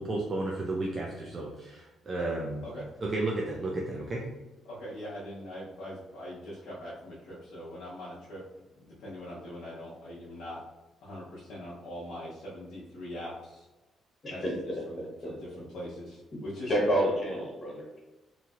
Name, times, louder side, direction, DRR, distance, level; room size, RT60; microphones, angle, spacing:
voice 1, 0.0-2.7 3.0-4.2, right 2 dB, 35° right, -2 dB, 0.5 m, -33 dB
voice 2, 4.6-8.4 8.8-10.6 11.0-13.7 14.3-16.7, left 1 dB, 85° left, -8 dB, 0.7 m, -42 dB
voice 3, 14.2-14.5 15.2-15.3 16.7-18.0, equal, 30° left, -4 dB, 1.3 m, -28 dB
3.0 x 2.7 x 2.4 m, 1.1 s
cardioid pair, 90°, 0 cm